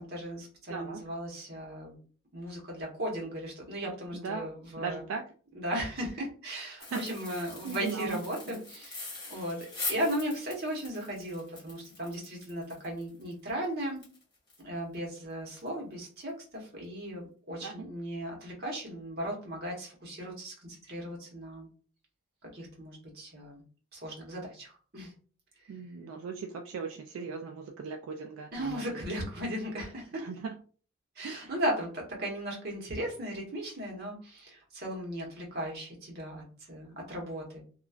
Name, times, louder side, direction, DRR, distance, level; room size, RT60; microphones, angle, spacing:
voice 1, 0.0-2.0 2.3-5.0 5.5-14.0 14.6-21.7 22.4-23.6 23.9-25.1 25.6-25.7 28.5-30.2 31.2-37.6, equal, 50° right, -1 dB, 1.0 m, -36 dB
voice 2, 0.7-1.0 4.1-4.4 4.8-5.2 6.8-8.2 8.5-8.6 17.6-17.9 25.7-28.8 30.2-30.5 31.2-31.5, right 5 dB, 80° right, 4 dB, 0.3 m, -38 dB
sound 1, 6.8-14.6 14.9-15.0 15.5-15.7 16.0-16.2, left 3 dB, 20° left, 1.3 m, -42 dB
2.9 x 2.3 x 2.3 m, 0.40 s
head